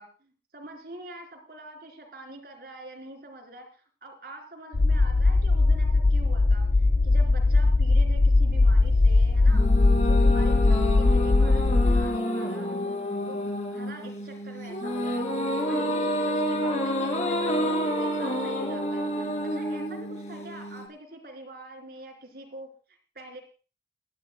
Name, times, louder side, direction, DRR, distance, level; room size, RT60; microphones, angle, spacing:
voice 1, 0.0-9.7 10.0-12.8 13.3-13.4 13.7-15.3 15.7-22.7 23.2-23.4, right 1 dB, 60° right, 3 dB, 3.8 m, -45 dB
sound 1, 4.7-12.1, left 3 dB, 60° left, 0.5 m, -20 dB
sound 2, 9.5-20.9, equal, 40° left, 2.5 m, -29 dB
27.0 x 11.0 x 2.2 m, 0.36 s
head